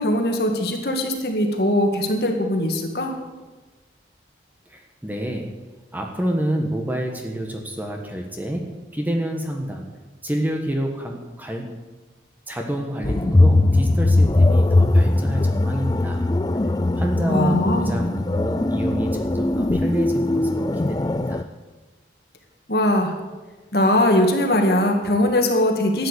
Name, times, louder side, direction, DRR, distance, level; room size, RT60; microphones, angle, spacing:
voice 1, 0.0-3.1 17.3-17.9 22.7-23.1 23.7-26.1, left 1 dB, 55° left, 3 dB, 2.0 m, -20 dB
voice 2, 4.7-5.5 5.9-9.9 10.2-11.7 12.5-16.3 16.9-21.5, equal, 10° right, 2 dB, 1.4 m, -28 dB
sound 1, 13.0-21.4, left 2 dB, 20° left, 0.4 m, -20 dB
13.0 x 9.4 x 8.2 m, 1.2 s
head